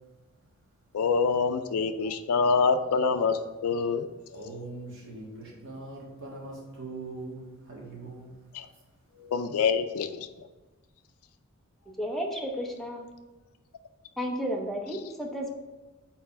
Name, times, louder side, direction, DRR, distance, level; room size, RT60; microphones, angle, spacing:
voice 1, 0.9-4.0 8.5-8.7 9.2-10.3, left 5 dB, 80° left, 8 dB, 0.4 m, -26 dB
voice 2, 4.3-8.3, right 2 dB, 60° right, -2 dB, 1.6 m, -41 dB
voice 3, 12.0-13.0 14.2-15.5, equal, ahead, 0 dB, 0.7 m, -32 dB
4.4 x 4.1 x 5.7 m, 1.1 s
head